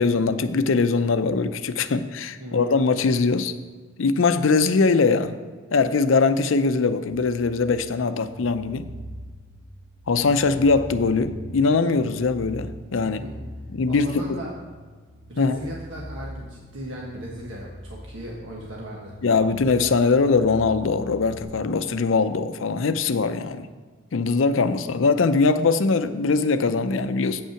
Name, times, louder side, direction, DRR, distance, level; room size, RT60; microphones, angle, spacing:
voice 1, 0.0-3.5 4.0-5.4 5.7-8.9 10.1-13.2 13.7-14.4 15.4-15.6 19.2-23.7 24.1-27.4, left 4 dB, 85° left, 11 dB, 0.5 m, -21 dB
voice 2, 2.4-2.7 13.0-13.3 13.9-14.5 15.3-19.1, equal, 80° right, -2 dB, 1.3 m, -37 dB
sound 1, 7.1-21.4, equal, ahead, 1.3 m, -42 dB
8.6 x 5.6 x 5.8 m, 1.5 s
head